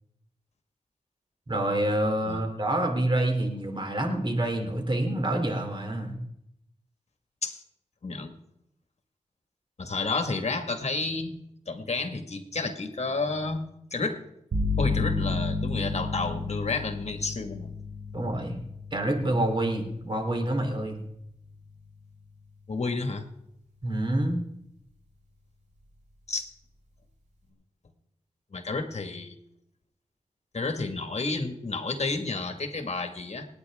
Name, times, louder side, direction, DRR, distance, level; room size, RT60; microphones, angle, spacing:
voice 1, 1.5-6.2 18.1-18.6 18.9-21.0 23.8-24.4, right 1 dB, 40° right, 3 dB, 3.2 m, -27 dB
voice 2, 8.0-8.3 9.8-11.4 11.7-13.6 13.9-14.2 14.8-17.7 22.7-23.2 26.3-26.5 28.5-29.4 30.5-33.5, left 3 dB, 60° left, 6 dB, 1.8 m, -30 dB
sound 1, 14.5-22.2, left 3 dB, 80° right, 4.5 m, -33 dB
27.5 x 9.5 x 3.6 m, 0.78 s
wide cardioid pair, 65°, 12 cm